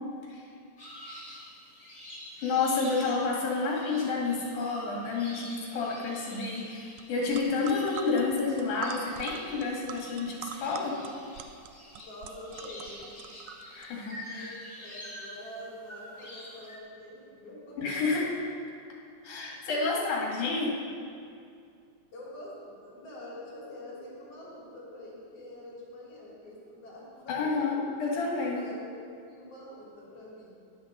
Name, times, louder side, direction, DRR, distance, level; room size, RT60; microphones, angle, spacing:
sound 1, 0.8-16.8, left 1 dB, 15° left, 1.5 m, -47 dB
voice 1, 2.4-11.0 13.7-14.6 17.8-18.3 19.2-20.8 27.3-28.6, left 4 dB, 70° left, -2 dB, 3.2 m, -30 dB
sound 2, 7.0-7.1 7.3-13.9, right 8 dB, 80° right, 1.7 m, -43 dB
voice 2, 12.0-13.2 14.3-18.3 19.9-20.1 22.1-27.5 28.5-30.6, left 1 dB, 50° left, -6 dB, 4.3 m, -46 dB
10.0 x 8.0 x 6.7 m, 2.4 s
omnidirectional pair, 3.7 m